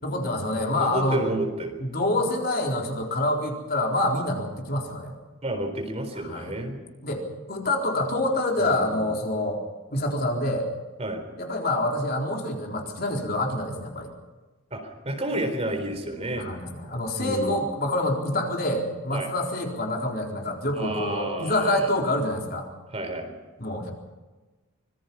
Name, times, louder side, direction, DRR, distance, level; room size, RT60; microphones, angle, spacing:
voice 1, 0.0-1.3 1.8-5.1 6.2-6.5 7.0-9.6 9.9-10.6 11.4-14.1 16.3-22.7 23.6-23.9, left 1 dB, 50° left, 1 dB, 4.1 m, -26 dB
voice 2, 0.7-1.8 5.4-6.8 8.6-9.1 11.0-11.2 14.7-16.5 17.2-17.6 19.1-19.3 20.7-22.0 22.9-23.3, right 1 dB, 30° right, 5 dB, 4.0 m, -31 dB
25.5 x 21.0 x 5.6 m, 1.2 s
head